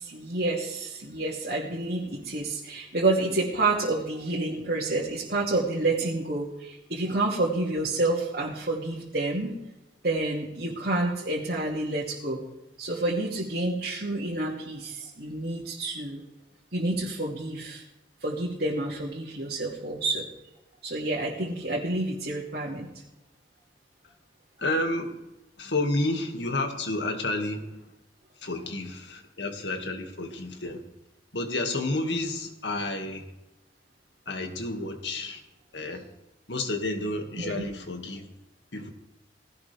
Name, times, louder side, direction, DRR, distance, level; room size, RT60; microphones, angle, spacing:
voice 1, 0.0-9.5 10.0-12.4 12.8-16.2 16.7-17.8 18.2-20.3 20.8-22.9 37.4-37.6, right 2 dB, 60° right, -5 dB, 2.5 m, -29 dB
voice 2, 24.6-25.2 25.6-27.8 28.4-30.8 31.3-33.2 34.3-35.4 35.7-36.0 36.5-38.3 38.7-38.9, left 2 dB, 80° left, 4 dB, 2.1 m, -30 dB
18.5 x 16.5 x 3.5 m, 0.93 s
head